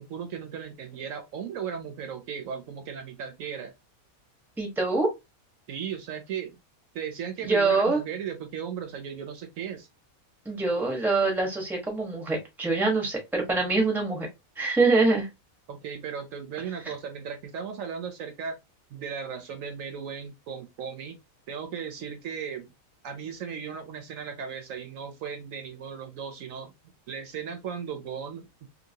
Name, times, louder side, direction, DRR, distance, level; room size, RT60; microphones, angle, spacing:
voice 1, 0.1-3.7 5.7-6.6 6.9-9.9 15.7-18.6 18.9-21.2 21.5-22.7 23.0-26.7 27.1-28.7, right 7 dB, 70° right, 1.0 m, -36 dB
voice 2, 4.6-5.1 7.4-8.0 10.4-14.3 14.6-15.3, right 3 dB, ahead, 0.9 m, -24 dB
2.8 x 2.8 x 2.7 m
omnidirectional pair, 1.5 m